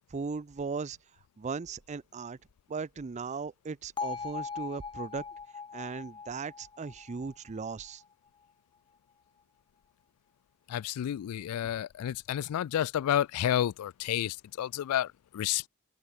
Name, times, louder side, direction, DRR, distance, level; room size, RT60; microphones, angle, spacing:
voice 1, 0.1-1.0 1.4-2.4 2.7-5.2 5.7-8.0, right 4 dB, 30° right, 0.4 m, -37 dB
Bell, 4.0-8.0, left 5 dB, 20° left, 0.5 m, -40 dB
voice 2, 10.7-15.7, left 11 dB, 80° left, 0.3 m, -30 dB
head